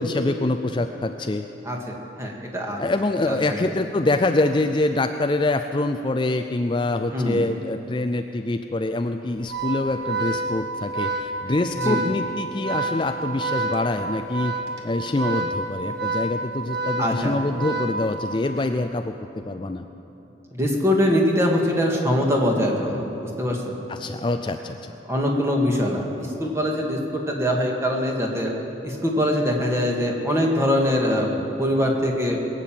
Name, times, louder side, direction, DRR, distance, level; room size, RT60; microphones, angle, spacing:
voice 1, 0.0-1.5 2.8-14.5 14.8-19.1 19.5-19.9 23.9-24.9, left 2 dB, 25° left, 7 dB, 0.4 m, -25 dB
voice 2, 1.6-2.8 3.3-3.7 7.1-7.4 11.8-12.0 17.0-17.4 20.5-23.7 25.0-28.5 28.8-31.3 31.6-32.4, equal, 15° right, -1 dB, 1.9 m, -23 dB
Organ, 9.4-18.5, right 2 dB, 65° right, 1.6 m, -28 dB
21.0 x 9.0 x 7.5 m, 2.9 s
head